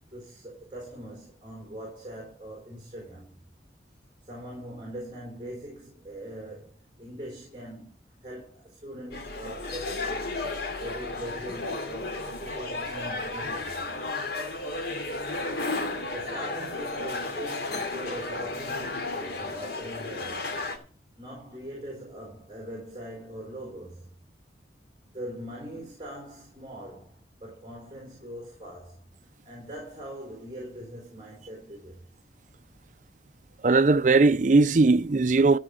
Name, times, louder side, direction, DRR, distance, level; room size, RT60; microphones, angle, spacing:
voice 1, 0.1-3.4 4.2-10.4 10.8-13.8 16.0-20.5 21.2-24.1 25.1-29.0 29.5-32.0, equal, 25° right, 4.1 m, -41 dB
sound 1, 9.1-20.8, left 3 dB, 65° left, 2.8 m, -33 dB
Wind instrument woodwind instrument, 13.8-17.9, right 1 dB, 90° left, 1.2 m, -47 dB
voice 2, 33.6-35.6, right 3 dB, 45° right, 0.5 m, -19 dB
13.5 x 5.0 x 8.1 m
head